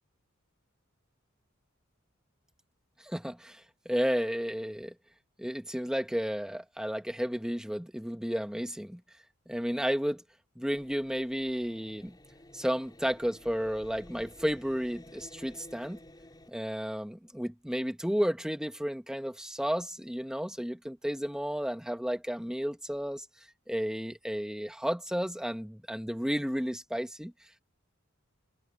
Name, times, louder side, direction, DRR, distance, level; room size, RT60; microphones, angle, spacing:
voice 1, 3.0-4.9 5.4-9.0 9.5-10.2 10.6-12.2 12.5-16.0 16.5-23.3 23.7-27.3, equal, 5° right, 1.3 m, -32 dB
sound 1, 10.7-16.5, left 1 dB, 20° left, 3.8 m, -53 dB
head